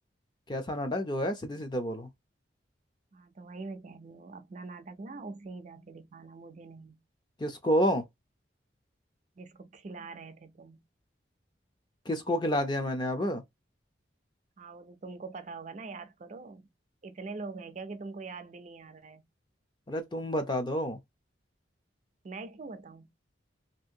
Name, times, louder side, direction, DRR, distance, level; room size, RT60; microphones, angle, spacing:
voice 1, 0.5-2.1 7.4-8.0 12.1-13.4 19.9-21.0, equal, 25° left, 0.5 m, -29 dB
voice 2, 3.1-7.0 9.4-10.8 14.6-16.7 17.0-19.3 22.2-23.1, right 3 dB, 40° right, 0.4 m, -43 dB
2.7 x 2.5 x 2.6 m
head